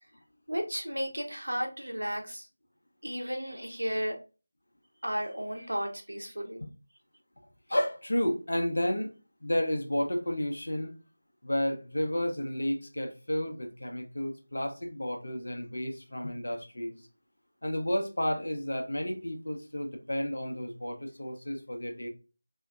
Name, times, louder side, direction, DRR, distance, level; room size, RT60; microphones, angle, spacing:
voice 1, 0.5-2.5 3.0-4.2 5.0-6.6, equal, 80° right, 0.9 m, -33 dB
voice 2, 7.7-9.1 9.4-10.9 11.4-17.1 17.6-22.1, left 1 dB, 65° left, 0.8 m, -31 dB
3.4 x 2.7 x 2.4 m
figure-of-eight pair, 165°, 0 cm